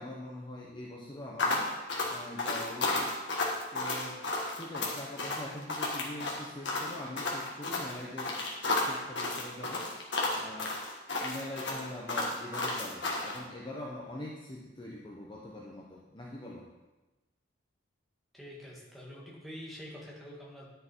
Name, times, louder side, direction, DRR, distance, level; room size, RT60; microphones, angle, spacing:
voice 1, 0.0-1.7 2.1-3.1 3.7-4.2 4.5-10.0 10.3-10.8 11.2-16.7, left 1 dB, 25° left, -3 dB, 0.9 m, -43 dB
sound 1, 1.4-13.4, left 2 dB, 65° left, 1.8 m, -32 dB
voice 2, 18.3-20.7, equal, ahead, -6 dB, 2.1 m, -46 dB
10.5 x 6.7 x 4.6 m, 1.1 s
head